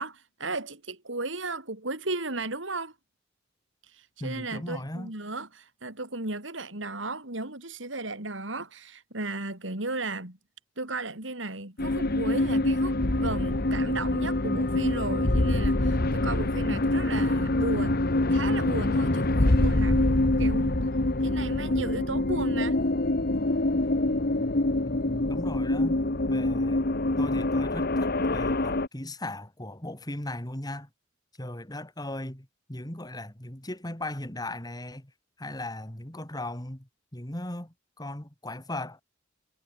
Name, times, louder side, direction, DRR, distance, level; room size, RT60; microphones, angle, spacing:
voice 1, 0.0-2.9 3.8-10.4 10.8-20.8 21.2-22.8, right 2 dB, 70° right, 5.6 m, -35 dB
voice 2, 4.2-5.1 24.8-26.0 26.3-26.9 27.2-30.9 31.4-35.1 35.4-39.0, left 1 dB, 20° left, 2.9 m, -37 dB
sound 1, 11.8-28.9, left 2 dB, 50° left, 1.4 m, -25 dB
head